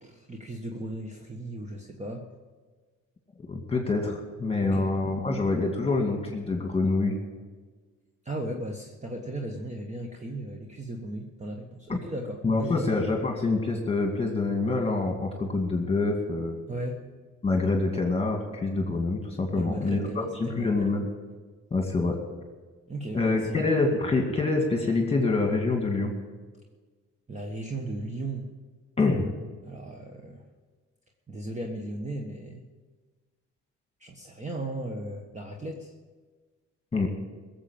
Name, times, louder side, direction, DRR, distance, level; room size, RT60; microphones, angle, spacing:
voice 1, 0.0-2.2 4.6-5.0 8.2-13.0 16.7-17.0 19.5-20.8 22.9-23.8 27.3-28.5 29.6-30.5 31.3-32.6 34.0-35.9, right 1 dB, 25° right, 2 dB, 1.4 m, -36 dB
voice 2, 3.5-7.2 11.9-12.0 12.4-16.6 17.4-21.1 21.7-22.2 23.1-26.1 29.0-29.3 36.9-37.1, left 3 dB, 20° left, 2 dB, 2.2 m, -26 dB
16.5 x 7.6 x 8.8 m, 1.4 s
cardioid pair, 90°, 30 cm